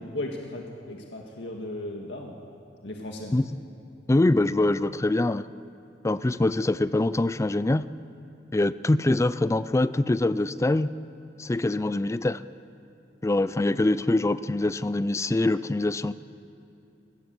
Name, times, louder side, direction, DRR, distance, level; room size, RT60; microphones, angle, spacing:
voice 1, 0.1-2.4 2.8-3.3, left 1 dB, 75° left, 1 dB, 1.9 m, -36 dB
voice 2, 4.1-5.4 6.0-7.8 8.5-10.9 11.4-12.4 13.2-16.1, left 2 dB, 15° left, 15 dB, 0.4 m, -24 dB
20.5 x 18.5 x 7.7 m, 2.9 s
head